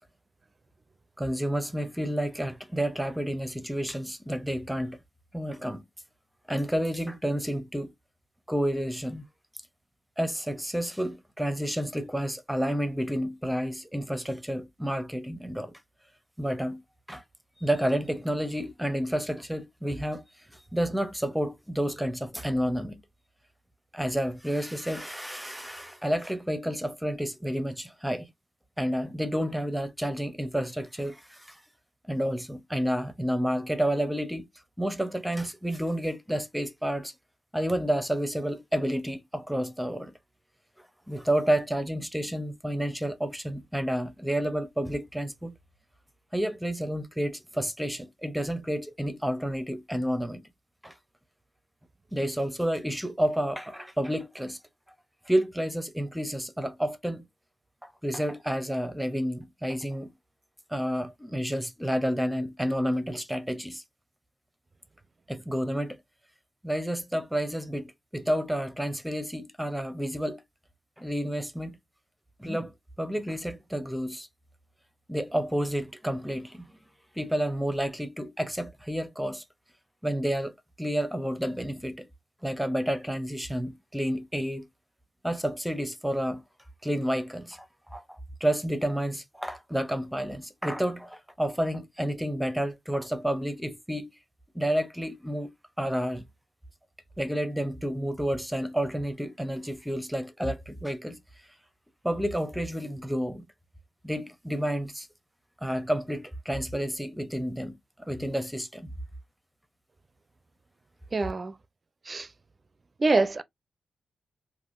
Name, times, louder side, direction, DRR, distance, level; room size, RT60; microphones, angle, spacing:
voice 1, 1.2-5.0 5.3-5.8 6.5-7.9 8.5-9.2 10.2-15.7 16.4-16.8 17.1-17.2 17.6-20.2 20.5-23.0 23.9-28.3 28.8-31.6 32.1-34.4 34.8-37.1 37.5-40.1 41.1-45.5 46.3-50.4 50.8-50.9 52.1-54.6 55.3-57.2 57.8-60.1 60.7-63.8 65.3-66.0 66.6-70.4 71.0-71.8 72.4-74.3 75.1-76.8 77.2-79.4 80.0-80.5 80.8-82.1 82.4-84.7 85.2-86.4 86.8-94.1 94.5-95.5 95.8-96.3 97.2-101.2 102.0-103.4 104.0-105.1 105.6-108.9, equal, 5° right, 0.7 m, -30 dB
voice 2, 111.1-111.5 112.1-112.3 113.0-113.4, right 3 dB, 40° right, 0.4 m, -25 dB
3.5 x 2.5 x 2.5 m
cardioid pair, 75°, 0 cm